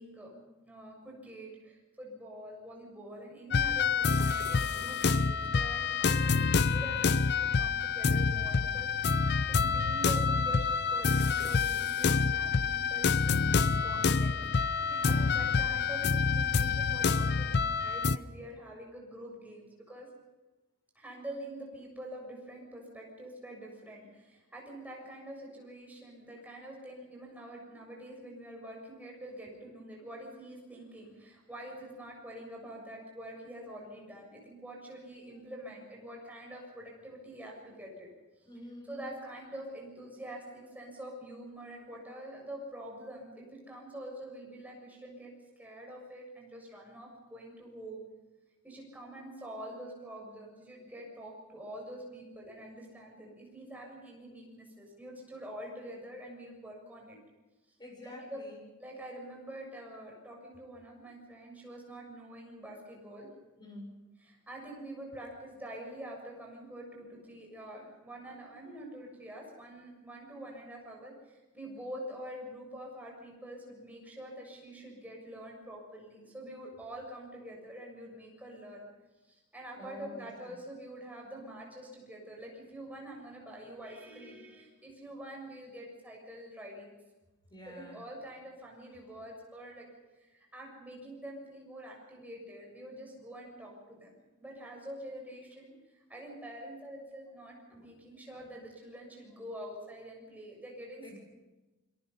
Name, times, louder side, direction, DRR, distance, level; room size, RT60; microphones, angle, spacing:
voice 1, 0.0-8.9 9.5-14.4 15.0-20.1 21.0-38.1 38.9-48.0 48.6-57.2 58.0-58.4 58.8-63.3 64.3-78.9 79.3-87.0 87.7-89.9 90.2-95.7 96.1-101.2, right 1 dB, 5° right, -1 dB, 7.3 m, -46 dB
sound 1, 3.5-18.2, left 5 dB, 50° left, 0.6 m, -27 dB
voice 2, 14.9-15.8 38.5-39.0 57.8-58.6 63.6-64.0 79.8-80.6 87.5-88.0 97.7-97.9 98.4-98.5 101.0-101.2, left 1 dB, 20° left, 1 dB, 7.2 m, -48 dB
28.5 x 23.0 x 5.6 m, 1.1 s
head